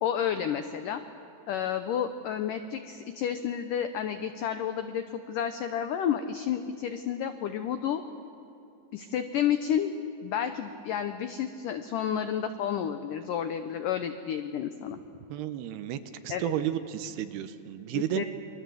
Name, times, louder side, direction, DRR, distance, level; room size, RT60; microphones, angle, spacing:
voice 1, 0.0-1.0 1.5-8.0 8.9-9.9 10.2-15.0 16.3-16.5 17.9-18.2, left 9 dB, 90° left, 8 dB, 1.8 m, -31 dB
voice 2, 15.3-16.0 16.2-18.3, right 12 dB, 75° right, 10 dB, 2.9 m, -32 dB
28.0 x 23.5 x 7.8 m, 2.9 s
omnidirectional pair, 5.0 m